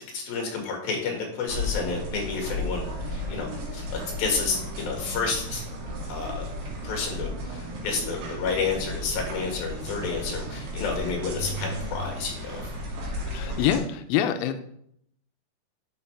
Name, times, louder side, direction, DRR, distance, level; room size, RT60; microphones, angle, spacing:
voice 1, 0.1-5.6 6.1-6.4 6.8-12.7, left 4 dB, 65° left, 1 dB, 3.5 m, -30 dB
sound 1, 1.5-13.8, left 1 dB, 70° right, 4.0 m, -34 dB
voice 2, 13.3-14.6, left 10 dB, 85° left, 8 dB, 2.1 m, -25 dB
9.7 x 6.1 x 3.4 m, 0.70 s
omnidirectional pair, 4.9 m